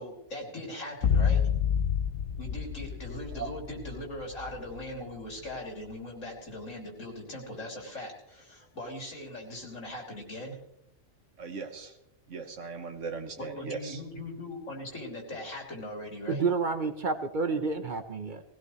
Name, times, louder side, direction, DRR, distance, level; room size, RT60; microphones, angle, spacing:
voice 1, 0.0-1.4 2.4-10.6 13.4-16.4, left 1 dB, 85° left, -1 dB, 3.5 m, -40 dB
sound 1, 1.0-5.3 5.5-5.6, left 7 dB, 70° left, 1.0 m, -29 dB
voice 2, 11.4-11.9 12.3-14.0, right 5 dB, 75° right, 6 dB, 1.8 m, -38 dB
voice 3, 16.3-18.4, right 4 dB, 45° right, 8 dB, 1.0 m, -29 dB
19.5 x 17.0 x 3.2 m, 0.82 s
omnidirectional pair, 1.3 m